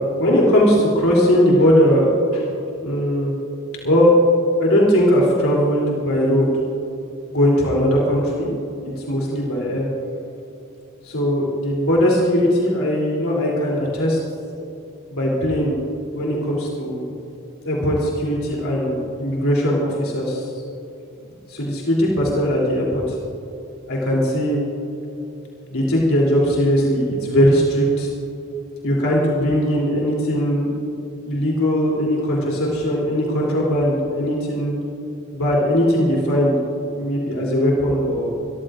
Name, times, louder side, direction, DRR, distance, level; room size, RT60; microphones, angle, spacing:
voice 1, 0.0-2.5 2.8-3.3 3.8-4.2 4.6-6.5 7.3-8.5 8.8-9.9 11.0-14.2 15.1-15.8 16.1-17.0 17.6-20.5 21.5-23.2 23.9-24.6 25.7-28.1 28.8-30.7 31.2-34.8 35.3-36.6 36.9-38.3, equal, 80° left, -4 dB, 3.3 m, -19 dB
25.5 x 14.0 x 2.6 m, 2.9 s
head